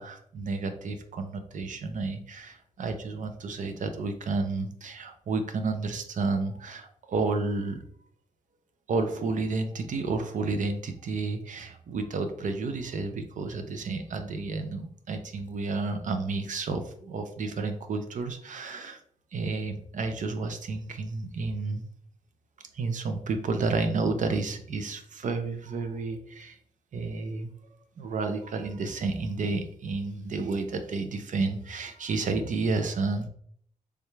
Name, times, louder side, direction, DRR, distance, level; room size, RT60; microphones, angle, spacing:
voice 1, 0.0-7.8 8.9-19.0 19.3-21.8 22.7-26.6 26.9-33.3, right 3 dB, 65° right, 7 dB, 0.6 m, -31 dB
3.4 x 3.3 x 3.2 m, 0.63 s
wide cardioid pair, 110°, 14 cm